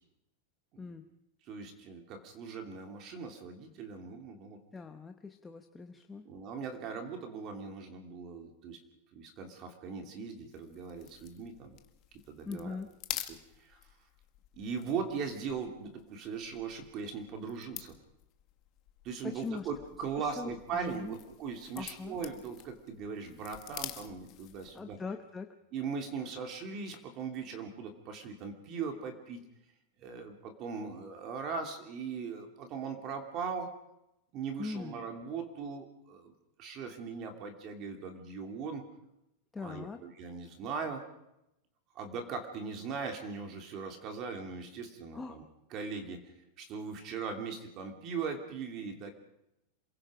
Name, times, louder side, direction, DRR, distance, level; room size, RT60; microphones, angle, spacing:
voice 1, 1.5-4.6 6.2-8.8 9.1-11.8 12.3-12.8 13.1-13.8 14.5-18.0 19.0-25.0 25.7-29.4 30.0-33.7 34.3-36.3 36.6-38.8 39.6-41.0 41.9-45.4 45.7-49.1, right 5 dB, 30° right, 4 dB, 2.9 m, -39 dB
voice 2, 4.7-6.3 12.5-12.9 19.2-19.7 20.2-21.2 21.8-22.2 24.7-25.6 34.6-35.0 39.5-40.0 45.1-45.4, left 4 dB, 10° left, 5 dB, 0.9 m, -41 dB
sound 1, 10.5-24.9, left 15 dB, 30° left, 1.4 m, -48 dB
27.5 x 23.0 x 5.1 m, 0.85 s
supercardioid pair, 175°, 0 cm